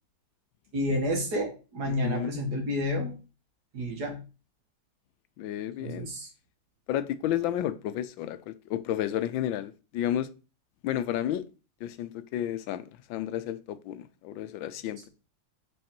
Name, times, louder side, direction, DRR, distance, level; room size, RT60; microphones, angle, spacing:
voice 1, 0.7-3.1 3.7-4.2 5.8-6.3, left 1 dB, 55° right, 2.2 m, -30 dB
voice 2, 1.9-2.4 5.4-6.1 6.9-10.3 10.8-11.4 11.8-12.8 13.1-15.1, left 11 dB, 80° left, 1.3 m, -31 dB
6.5 x 4.3 x 4.4 m
omnidirectional pair, 2.1 m